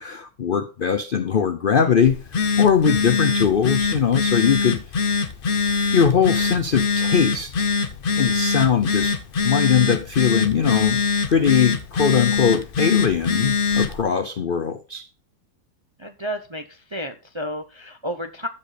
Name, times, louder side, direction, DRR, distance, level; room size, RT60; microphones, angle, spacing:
voice 1, 0.0-2.2 2.6-4.8 5.9-7.7 8.2-9.2 9.4-11.0 11.3-15.0, left 7 dB, 70° left, 0.5 m, -20 dB
Telephone, 2.1-14.0, left 4 dB, 45° left, 0.8 m, -23 dB
voice 2, 16.0-18.5, equal, 30° right, 0.5 m, -31 dB
14.5 x 5.2 x 4.2 m
omnidirectional pair, 1.8 m